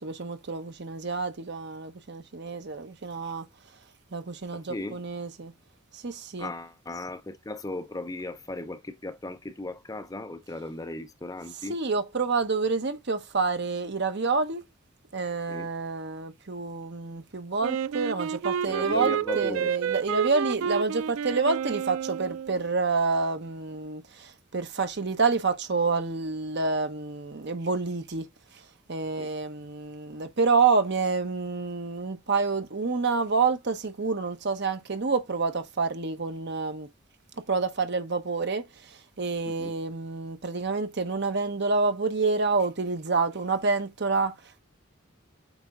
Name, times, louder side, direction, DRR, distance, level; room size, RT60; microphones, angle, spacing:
voice 1, 0.0-3.4 4.1-5.5 5.9-6.5 11.7-14.6 15.1-28.3 28.9-36.9 37.5-44.3, right 4 dB, 55° right, 0.9 m, -28 dB
voice 2, 4.5-5.0 6.4-11.8 15.5-15.7 18.6-19.7 29.2-29.3 39.4-39.7, left 2 dB, 15° left, 0.5 m, -37 dB
Wind instrument woodwind instrument, 17.6-22.7, right 8 dB, 75° right, 0.3 m, -30 dB
8.1 x 3.5 x 3.6 m
head